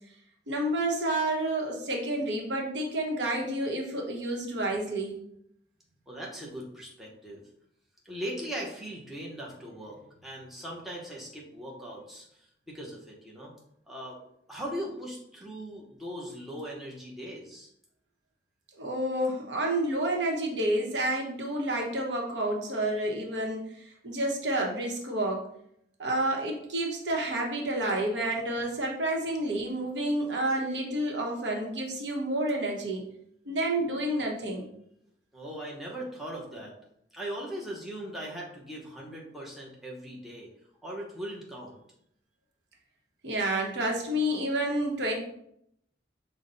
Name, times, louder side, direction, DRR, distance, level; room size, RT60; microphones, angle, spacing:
voice 1, 0.5-5.1 18.8-23.6 24.0-25.4 26.0-33.0 33.5-34.7 43.2-45.2, right 1 dB, 90° right, 0 dB, 0.9 m, -29 dB
voice 2, 6.1-7.4 8.0-12.3 12.7-13.5 13.9-14.2 14.5-17.7 35.3-36.7 37.1-40.5 40.8-41.8, equal, ahead, -4 dB, 0.8 m, -39 dB
5.5 x 2.2 x 3.9 m, 0.74 s
head